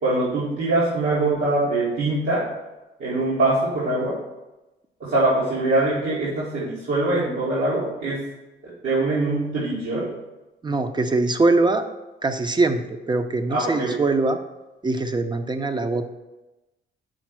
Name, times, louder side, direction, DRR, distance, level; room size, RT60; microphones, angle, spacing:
voice 1, 0.0-2.5 3.0-4.2 5.0-8.2 8.8-10.1 13.5-14.0, right 2 dB, 90° right, -11 dB, 2.5 m, -23 dB
voice 2, 10.6-11.9 12.2-14.4 14.8-16.1, right 3 dB, 20° right, 8 dB, 0.7 m, -22 dB
6.4 x 4.1 x 6.1 m, 1.0 s
cardioid pair, 90°, 20 cm